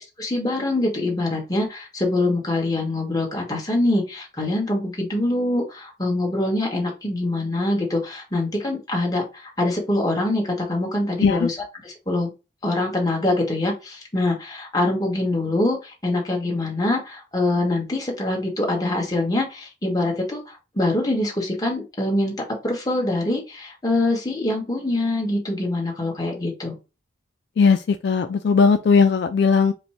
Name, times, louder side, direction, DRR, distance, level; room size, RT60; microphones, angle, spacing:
voice 1, 0.2-11.6 11.8-12.3 12.6-22.3 22.6-26.7, left 2 dB, 20° left, 1.3 m, -24 dB
voice 2, 27.6-29.7, left 5 dB, 60° left, 0.3 m, -18 dB
5.2 x 2.2 x 4.3 m
head